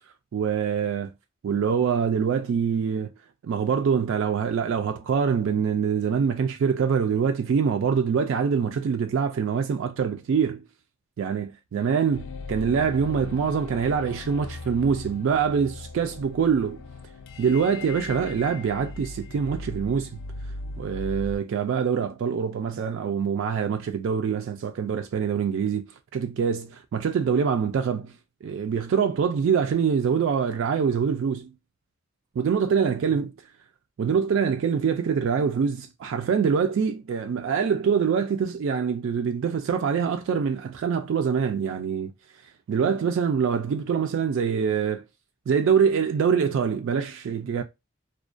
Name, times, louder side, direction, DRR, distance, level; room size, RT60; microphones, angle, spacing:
voice 1, 0.3-1.1 1.4-3.1 3.4-10.6 11.2-16.8 17.4-20.2 20.8-25.8 26.1-28.2 28.4-31.5 32.4-33.3 34.0-42.1 42.7-45.0 45.5-47.6, right 6 dB, 65° right, 0.3 m, -24 dB
sound 1, 12.1-21.4, left 3 dB, 65° left, 0.3 m, -38 dB
2.3 x 2.1 x 2.4 m
head